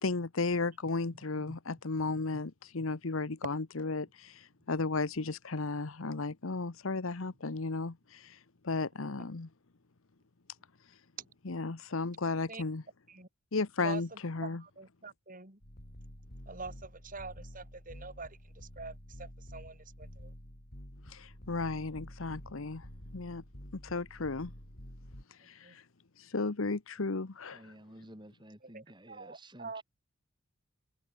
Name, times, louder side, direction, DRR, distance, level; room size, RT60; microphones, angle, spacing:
voice 1, 0.0-9.5 10.9-11.0 11.4-12.8 13.5-14.6 21.1-22.9 23.1-23.4 23.8-24.5 25.3-25.8 26.2-27.7, left 3 dB, 65° left, 1.0 m, -34 dB
voice 2, 13.8-15.6 16.5-20.3 25.6-25.7 28.6-29.8, right 3 dB, 40° right, 4.0 m, -45 dB
sound 1, 15.6-25.2, equal, 50° left, 4.9 m, -49 dB
voice 3, 27.5-29.8, right 1 dB, 20° right, 6.6 m, -52 dB
head